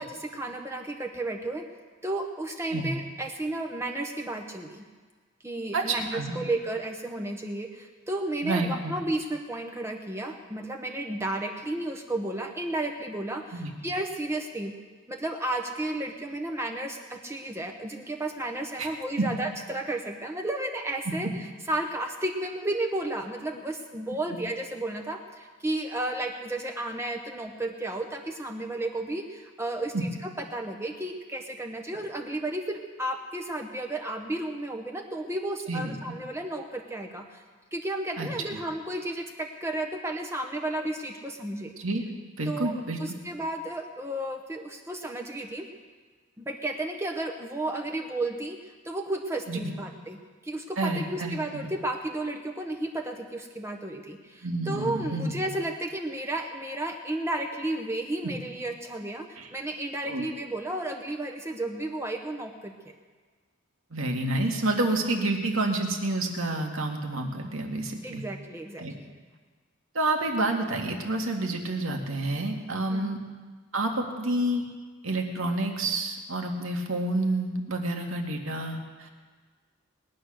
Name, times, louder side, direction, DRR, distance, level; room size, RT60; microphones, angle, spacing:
voice 1, 0.0-1.7 2.0-4.8 5.4-14.7 15.1-21.3 21.7-37.4 37.7-41.7 42.5-45.7 46.4-50.2 50.4-62.7 68.0-69.0 72.9-73.1, right 1 dB, 15° right, 3 dB, 1.0 m, -33 dB
voice 2, 5.7-6.4 8.4-8.9 13.5-13.7 18.8-18.9 19.2-19.3 21.2-21.3 29.9-30.0 35.7-36.0 38.2-38.3 41.8-42.0 42.4-43.0 49.5-49.7 50.8-51.7 54.4-55.4 59.4-59.5 60.1-60.2 63.9-68.3 68.8-68.9 69.9-73.2 73.7-74.7 75.0-79.1, right 2 dB, 85° right, 2 dB, 2.1 m, -29 dB
20.5 x 9.5 x 6.5 m, 1.4 s
head